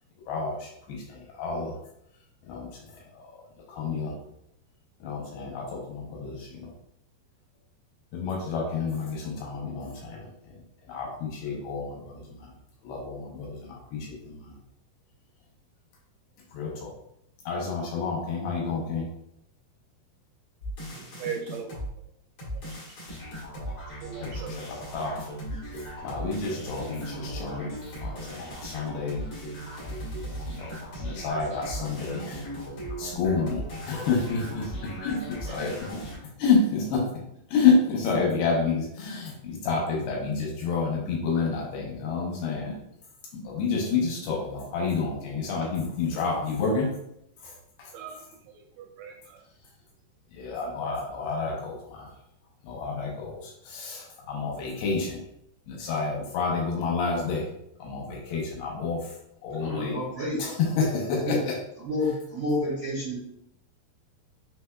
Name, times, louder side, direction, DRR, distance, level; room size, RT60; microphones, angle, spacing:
voice 1, 0.3-1.8 2.4-4.2 5.0-6.7 8.1-12.5 12.8-14.6 16.5-16.9 17.5-19.1 24.2-25.3 25.7-29.2 30.5-32.5 33.0-35.9 36.4-37.1 37.5-42.8 43.3-46.9 47.4-47.9 50.3-52.1 52.6-55.2 55.7-57.5 57.8-59.2 59.4-60.0 60.4-61.6, left 4 dB, 75° left, -1 dB, 2.5 m, -29 dB
sound 1, 20.6-21.9 22.4-36.2, equal, 55° left, 1.7 m, -37 dB
voice 2, 20.9-21.8 22.6-22.7 24.0-24.5 47.9-48.2 48.8-49.4, right 7 dB, 85° right, 3 dB, 2.4 m, -38 dB
voice 3, 59.5-60.5 61.2-61.4 61.8-63.2, left 1 dB, 55° right, -10 dB, 1.2 m, -29 dB
6.1 x 3.4 x 2.3 m, 0.76 s
omnidirectional pair, 4.9 m